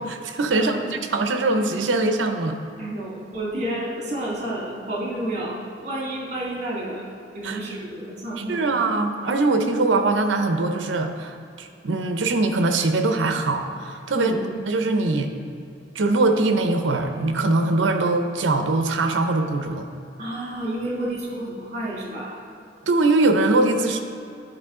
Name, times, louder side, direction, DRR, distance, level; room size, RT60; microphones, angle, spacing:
voice 1, 0.0-2.6 7.4-7.6 8.4-14.4 14.7-15.3 15.9-19.9 22.9-24.0, right 2 dB, 75° right, 5 dB, 0.6 m, -22 dB
voice 2, 0.5-0.8 2.8-7.1 7.3-8.6 14.1-14.4 20.2-22.4, right 1 dB, 40° right, -4 dB, 1.8 m, -30 dB
11.0 x 4.3 x 3.7 m, 2.6 s
head